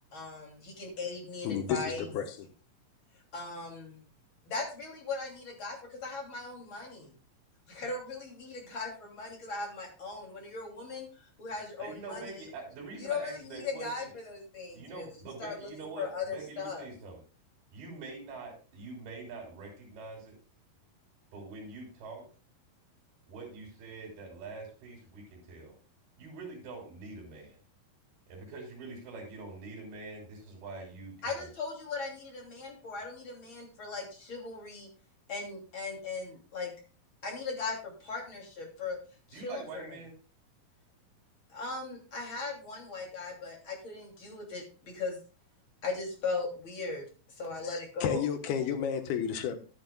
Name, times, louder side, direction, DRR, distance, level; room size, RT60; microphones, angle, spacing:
voice 1, 0.1-2.1 3.3-4.0 4.5-7.1 7.7-12.3 13.0-15.7 16.0-16.9 31.2-34.9 35.3-36.7 37.2-39.0 39.3-40.0 41.5-45.2 45.8-47.1 47.4-48.3, left 4 dB, 35° left, -1 dB, 3.3 m, -38 dB
voice 2, 1.4-2.3 48.0-49.6, left 8 dB, 90° left, 7 dB, 3.1 m, -31 dB
voice 3, 11.8-14.1 14.7-17.2 17.7-20.4 21.3-22.3 23.3-25.7 26.2-27.6 28.3-31.5 39.3-40.1, right 3 dB, 80° right, -3 dB, 5.2 m, -44 dB
11.5 x 10.5 x 2.3 m, 0.36 s
omnidirectional pair, 4.3 m